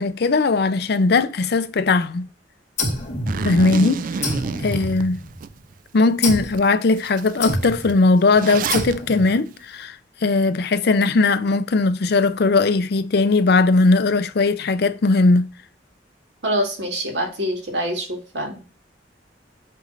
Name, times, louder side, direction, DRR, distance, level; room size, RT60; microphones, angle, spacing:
voice 1, 0.0-2.3 3.4-4.1 4.6-5.2 5.9-10.0 10.2-15.5, left 3 dB, 65° left, 0.5 m, -18 dB
sound 1, 2.8-3.8 4.2-5.5 6.2-6.6 7.4-8.0 8.7-9.3, left 1 dB, 40° left, 2.0 m, -27 dB
Zipper (clothing), 3.3-5.5 6.0-6.1 6.5-6.7 6.9-8.9, right 5 dB, 50° right, 0.3 m, -29 dB
voice 2, 16.4-18.6, equal, 80° right, 2.1 m, -25 dB
7.5 x 3.2 x 4.0 m
head